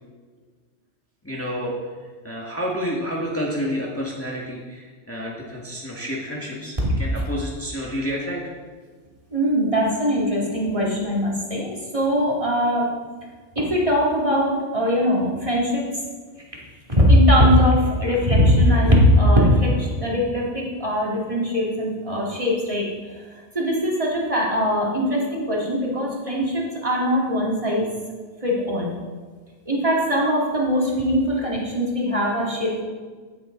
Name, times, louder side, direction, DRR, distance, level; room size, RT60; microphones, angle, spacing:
voice 1, 1.2-1.7 2.2-8.4, equal, 10° left, -4 dB, 1.7 m, -29 dB
voice 2, 9.3-12.9 13.6-15.8 16.9-22.9 23.5-27.9 28.4-29.0 29.7-32.8, equal, 30° right, -4 dB, 2.5 m, -20 dB
18.0 x 7.5 x 3.8 m, 1.4 s
omnidirectional pair, 1.2 m